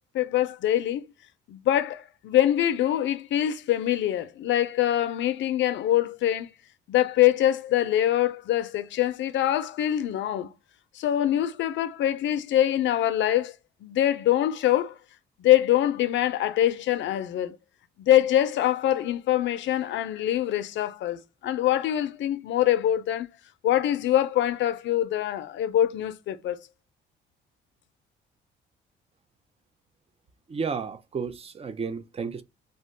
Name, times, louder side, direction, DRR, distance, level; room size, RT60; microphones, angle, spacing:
voice 1, 0.1-1.1 1.5-6.5 6.9-10.5 10.9-13.5 13.8-14.9 15.4-17.6 18.0-23.3 23.6-26.6, left 12 dB, 70° left, 0.4 m, -24 dB
voice 2, 30.5-32.4, right 5 dB, 30° right, 0.4 m, -32 dB
2.3 x 2.1 x 3.8 m
cardioid pair, 90°, 20 cm